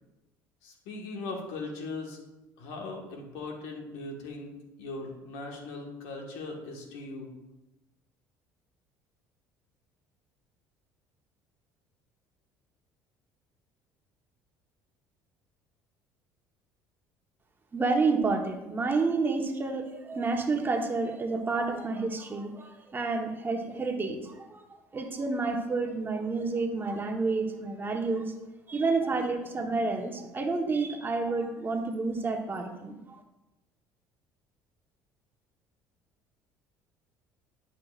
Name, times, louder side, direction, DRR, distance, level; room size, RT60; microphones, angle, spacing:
voice 1, 0.6-2.2 2.6-4.5 4.8-7.3, left 3 dB, 85° left, 1 dB, 1.6 m, -39 dB
voice 2, 17.7-24.6 24.9-28.3 28.7-33.0, right 3 dB, 25° right, 3 dB, 1.2 m, -29 dB
10.5 x 5.8 x 2.5 m, 1.0 s
supercardioid pair, 85°, 8 cm